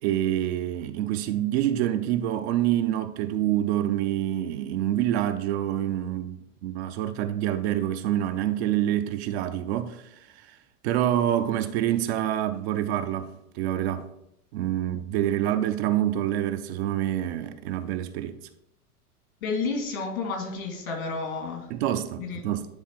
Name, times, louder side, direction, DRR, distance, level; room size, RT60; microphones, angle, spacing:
voice 1, 0.0-10.6 10.8-14.1 14.5-18.4 21.7-22.7, right 12 dB, 45° right, 0.6 m, -27 dB
voice 2, 19.4-21.7 22.2-22.5, left 4 dB, 65° left, 2.3 m, -31 dB
9.6 x 3.3 x 4.6 m
figure-of-eight pair, 90°, 45 cm